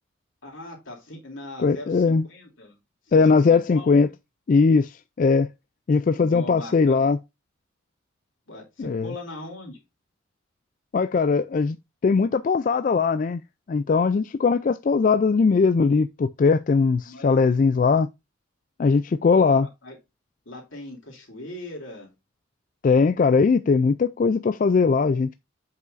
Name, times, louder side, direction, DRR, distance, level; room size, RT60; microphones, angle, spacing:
voice 1, 0.4-2.8 3.1-3.9 6.2-7.0 8.5-9.8 17.1-17.5 19.8-20.0 20.4-22.1, left 1 dB, 85° left, 2.9 m, -40 dB
voice 2, 1.6-2.3 3.1-4.1 4.5-5.5 5.9-7.2 8.8-9.1 10.9-11.8 12.0-13.4 13.7-18.1 18.8-19.7 22.8-25.3, left 4 dB, 40° left, 0.3 m, -20 dB
7.7 x 5.6 x 2.6 m
head